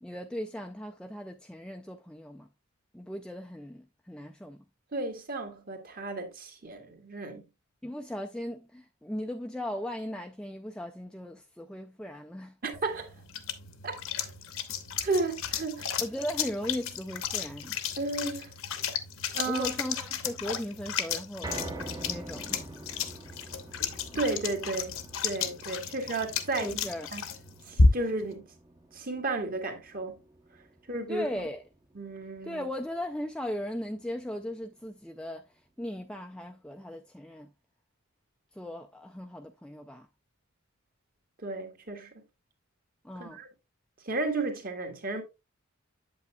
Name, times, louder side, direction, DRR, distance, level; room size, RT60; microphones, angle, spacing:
voice 1, 0.0-2.5 2.9-4.6 7.8-12.6 16.0-17.8 19.4-21.5 22.0-22.6 26.6-27.1 31.1-31.6 32.4-37.5 38.5-40.1 43.0-43.4, left 1 dB, 5° left, 0.3 m, -37 dB
voice 2, 4.9-7.5 12.6-13.1 13.8-14.3 15.0-15.9 18.0-18.5 19.3-19.7 24.2-24.9 25.2-26.8 27.1-27.2 27.7-28.5 28.9-30.2 30.9-31.3 32.0-32.7 41.4-42.1 43.2-43.5 44.0-45.2, right 3 dB, 45° right, 1.6 m, -33 dB
sound 1, 12.7-28.3, left 4 dB, 70° left, 0.9 m, -32 dB
sound 2, 21.4-33.7 34.1-34.2 34.6-34.7, right 2 dB, 20° right, 0.7 m, -46 dB
8.2 x 7.7 x 2.3 m
head